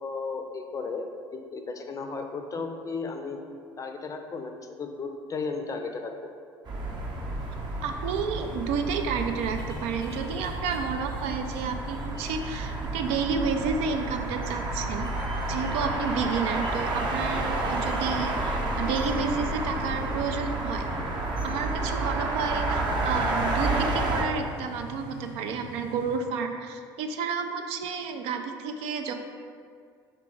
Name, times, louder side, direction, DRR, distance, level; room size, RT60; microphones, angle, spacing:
voice 1, 0.0-3.4 3.8-6.3, left 4 dB, 30° left, 5 dB, 0.5 m, -35 dB
sound 1, 6.7-26.2, left 3 dB, 90° left, 0.7 m, -44 dB
sound 2, 6.7-24.2, right 2 dB, 40° right, 0.7 m, -30 dB
voice 2, 7.8-15.1 15.5-20.8 21.4-29.1, right 5 dB, 65° right, 5 dB, 0.4 m, -31 dB
3.4 x 2.9 x 4.6 m, 2.2 s
hypercardioid pair, 70°, 11 cm